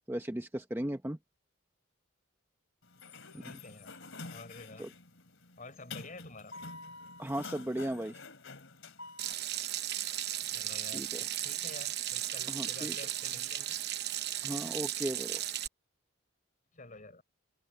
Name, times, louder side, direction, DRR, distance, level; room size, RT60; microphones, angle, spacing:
voice 1, 0.1-1.2 3.3-3.4 4.8-4.9 7.2-8.2 10.9-11.2 12.5-13.0 14.4-15.4, right 1 dB, 10° right, 0.8 m, -36 dB
Sliding door, 2.8-9.3, left 3 dB, 65° left, 2.9 m, -48 dB
voice 2, 3.2-3.9 4.2-4.9 5.6-6.5 10.4-13.8 16.7-17.2, left 2 dB, 40° left, 6.1 m, -50 dB
Water tap faucet / Sink (filling or washing), 9.2-15.7, right 12 dB, 55° right, 0.9 m, -36 dB
open air
head